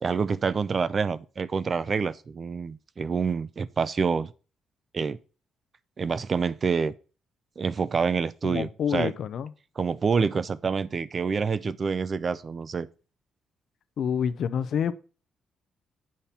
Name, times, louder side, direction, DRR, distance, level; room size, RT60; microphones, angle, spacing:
voice 1, 0.0-4.3 4.9-5.2 6.0-6.9 7.6-9.1 9.8-12.9, right 5 dB, 40° right, 0.5 m, -27 dB
voice 2, 8.4-9.5 14.0-14.9, left 8 dB, 65° left, 0.6 m, -28 dB
8.7 x 5.4 x 4.3 m
cardioid pair, 90°, 0 cm